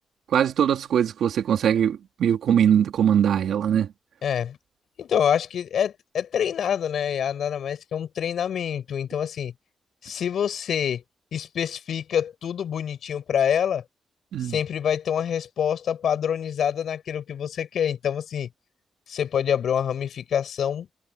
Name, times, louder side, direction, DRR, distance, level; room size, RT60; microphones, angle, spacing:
voice 1, 0.3-3.9 14.3-14.6, right 9 dB, 85° right, 3.7 m, -21 dB
voice 2, 4.2-4.6 5.0-9.5 10.0-11.0 11.3-13.8 14.4-18.5 19.1-20.9, left 8 dB, 65° left, 7.6 m, -26 dB
wide cardioid pair, 180°, 0 cm